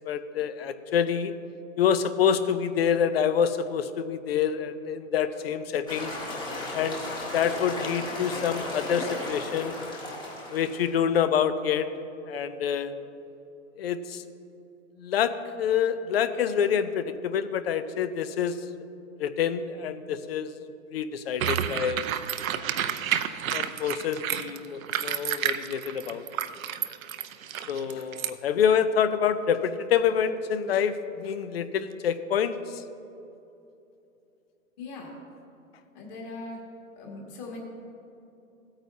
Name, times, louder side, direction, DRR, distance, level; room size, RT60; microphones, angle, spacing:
voice 1, 0.1-1.3 1.8-6.2 6.7-7.0 7.3-9.8 10.5-11.9 12.3-12.9 13.8-14.2 15.0-18.6 19.2-20.5 20.9-22.1 23.5-26.2 27.7-32.8, left 8 dB, 45° left, 12 dB, 0.6 m, -27 dB
sound 1, 5.9-10.9, left 1 dB, 10° left, 1.3 m, -35 dB
sound 2, 21.4-28.3, right 9 dB, 70° right, 0.7 m, -30 dB
voice 2, 34.8-35.1 35.9-36.6 36.9-37.6, left 3 dB, 30° left, -1 dB, 2.1 m, -40 dB
16.5 x 8.9 x 2.8 m, 2.8 s
hypercardioid pair, 145°, 42 cm